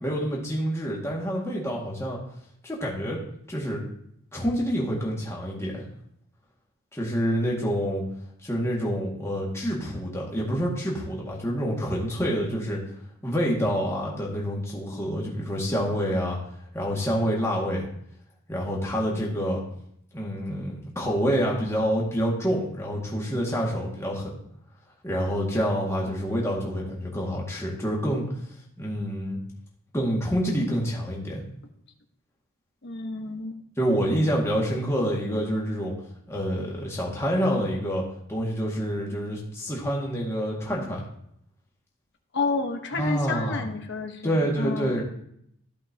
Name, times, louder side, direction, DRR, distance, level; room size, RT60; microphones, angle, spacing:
voice 1, 0.0-2.2 2.6-3.2 3.5-3.8 4.3-5.8 6.9-8.0 8.4-12.8 13.2-16.4 16.7-17.9 18.5-19.6 20.1-24.4 25.0-28.3 28.8-29.4 29.9-31.4 33.8-35.9 36.3-38.0 38.3-41.0 43.0-43.6 44.2-45.0, equal, 10° left, -3 dB, 1.8 m, -27 dB
voice 2, 32.8-33.6 42.3-45.0, left 3 dB, 50° left, 4 dB, 1.0 m, -30 dB
14.0 x 5.4 x 2.7 m, 0.70 s
head